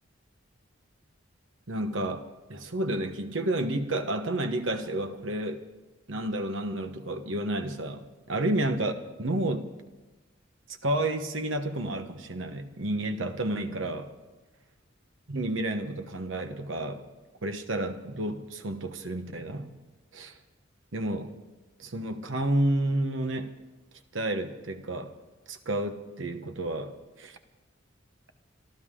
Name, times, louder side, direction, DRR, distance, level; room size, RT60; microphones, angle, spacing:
voice 1, 1.7-2.2 2.5-5.6 6.1-8.9 9.2-9.7 10.7-14.1 15.3-17.0 17.4-19.7 20.1-20.4 20.9-21.3 21.8-23.5 24.1-25.1 25.5-26.9 27.2-27.4, right 1 dB, 75° right, 7 dB, 1.2 m, -30 dB
25.5 x 13.0 x 3.8 m, 1.1 s
head